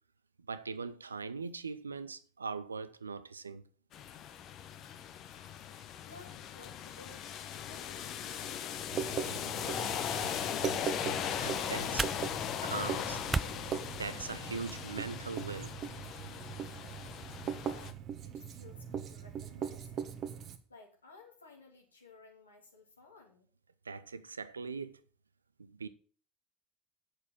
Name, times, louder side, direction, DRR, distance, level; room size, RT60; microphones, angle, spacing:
voice 1, 0.5-3.6 11.4-12.1 12.6-13.2 14.0-15.8 23.8-25.0 25.6-25.9, right 4 dB, 85° right, 0.6 m, -40 dB
sound 1, 3.9-17.9, left 9 dB, 50° left, 1.2 m, -39 dB
voice 2, 6.1-7.2 7.7-8.0 8.2-11.5 17.5-20.1 20.7-23.5, left 3 dB, 90° left, 2.8 m, -57 dB
Writing, 8.9-20.6, right 8 dB, 45° right, 1.4 m, -40 dB
sound 2, 10.9-14.8, right 3 dB, 20° right, 0.4 m, -40 dB
8.3 x 6.7 x 7.4 m
figure-of-eight pair, 70°, 0 cm